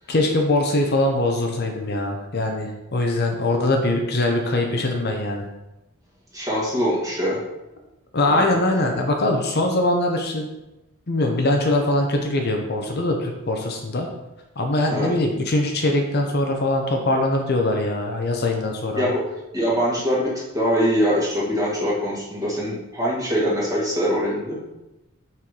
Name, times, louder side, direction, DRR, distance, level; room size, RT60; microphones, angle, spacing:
voice 1, 0.1-5.5 8.1-10.5 11.1-14.1 14.6-19.1, left 1 dB, 45° left, 2 dB, 0.8 m, -22 dB
voice 2, 6.3-7.4 8.3-8.4 14.9-15.1 19.0-19.3 19.5-24.6, equal, 15° right, -5 dB, 1.8 m, -23 dB
5.9 x 4.6 x 4.8 m, 0.97 s
head